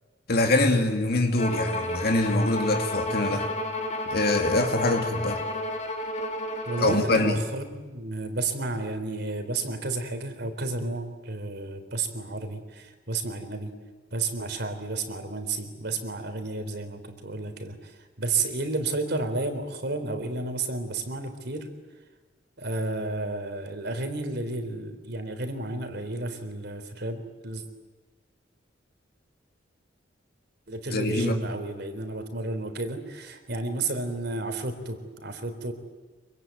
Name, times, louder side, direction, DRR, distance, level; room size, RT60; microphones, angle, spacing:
voice 1, 0.3-3.5 4.1-5.4 6.8-7.4 30.9-31.4, left 2 dB, 55° left, 4 dB, 2.5 m, -24 dB
Bowed string instrument, 1.4-7.1, left 1 dB, 40° left, 2.8 m, -31 dB
voice 2, 6.7-13.7 14.1-21.7 22.6-27.6 30.7-35.7, right 3 dB, 60° right, 8 dB, 3.6 m, -32 dB
26.5 x 24.0 x 9.2 m, 1.3 s
head